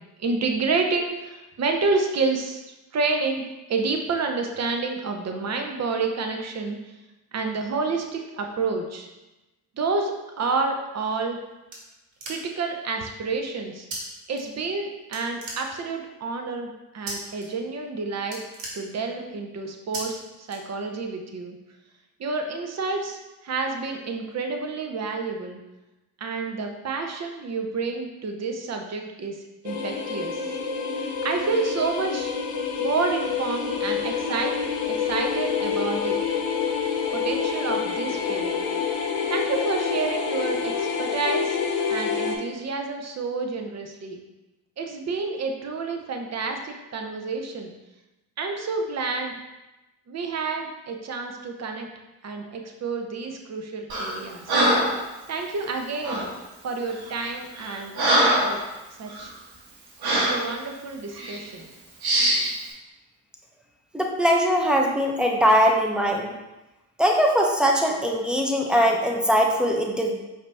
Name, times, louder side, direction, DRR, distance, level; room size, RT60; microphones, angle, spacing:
voice 1, 0.2-2.6 2.9-6.8 7.3-9.1 9.8-11.4 12.3-13.9 14.3-18.4 18.7-21.6 22.2-25.6 26.2-29.4 29.6-30.4 31.2-32.3 32.8-36.2 37.1-38.6 39.3-41.6 41.9-44.2 44.8-47.7 48.4-49.4 50.1-51.9 52.2-54.5 55.3-56.3 56.6-57.9 58.4-58.6 59.0-59.3 60.1-61.7, right 4 dB, 35° right, 4 dB, 0.8 m, -29 dB
sound 1, 11.0-12.7 13.9-14.0 14.3-14.8 15.1-16.1 17.1-17.5 17.8-17.9 18.2-19.4 19.9-20.0 20.5-21.1, right 2 dB, 65° right, 1.5 m, -37 dB
sound 2, 29.6-42.4, left 6 dB, 50° left, 0.9 m, -27 dB
Breathing, 53.9-54.2 54.5-55.0 56.0-56.3 57.0-57.1 57.6-58.6 59.1-59.2 60.0-60.4 61.1-61.4 62.0-62.5, right 1 dB, 50° right, 1.4 m, -22 dB
voice 2, 63.9-66.3 67.0-70.1, equal, ahead, 0 dB, 0.8 m, -21 dB
4.9 x 2.9 x 3.4 m, 1.0 s
hypercardioid pair, 55°, 49 cm